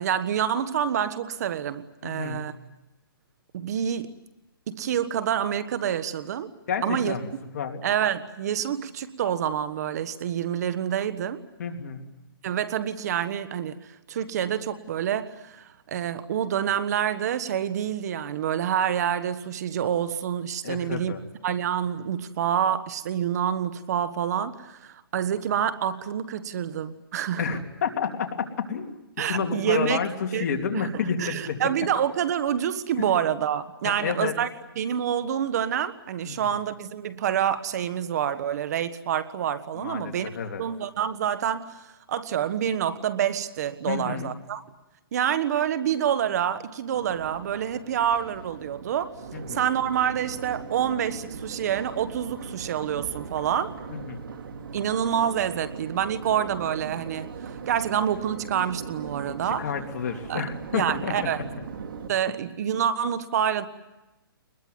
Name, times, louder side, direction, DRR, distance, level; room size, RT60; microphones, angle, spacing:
voice 1, 0.0-2.5 3.5-4.1 4.7-6.5 6.8-7.1 7.8-11.4 12.4-21.1 21.4-27.4 29.2-30.0 30.3-30.4 30.7-30.9 31.2-34.5 34.8-40.3 40.6-41.8 42.1-44.6 45.1-49.1 49.5-53.7 54.7-59.6 60.3-60.4 60.7-61.5 62.1-63.7, right 9 dB, 45° right, 13 dB, 1.3 m, -27 dB
voice 2, 2.0-2.4 6.7-7.8 11.6-12.0 20.6-21.2 27.4-28.3 28.7-29.0 29.3-31.6 33.8-34.3 36.2-36.5 39.8-40.6 43.9-44.3 49.3-49.6 53.9-54.2 59.3-61.3 62.3-62.4, left 6 dB, 50° left, 3 dB, 3.1 m, -30 dB
Crowd, 46.9-62.1, right 5 dB, 65° right, 2.5 m, -39 dB
24.0 x 21.0 x 9.5 m, 1.0 s
hypercardioid pair, 160°, 12 cm